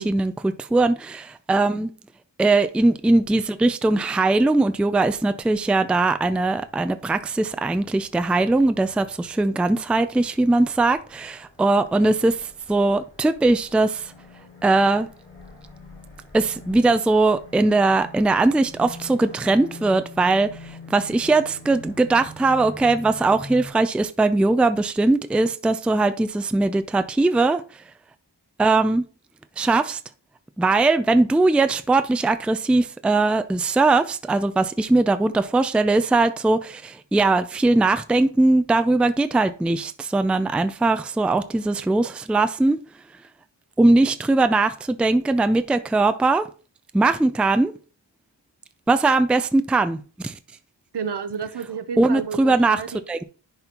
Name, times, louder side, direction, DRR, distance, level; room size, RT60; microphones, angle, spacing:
voice 1, 0.0-1.9 2.4-14.1 14.6-15.1 16.3-27.6 28.6-29.1 29.6-30.0 30.6-42.8 43.8-46.5 46.9-47.7 48.9-50.4 52.0-52.8 53.1-53.2, right 2 dB, 5° right, 0.3 m, -20 dB
sound 1, 4.7-23.7, left 1 dB, 30° left, 2.1 m, -45 dB
voice 2, 50.9-53.0, right 6 dB, 70° right, 0.8 m, -31 dB
10.5 x 4.2 x 2.9 m
wide cardioid pair, 85°, 42 cm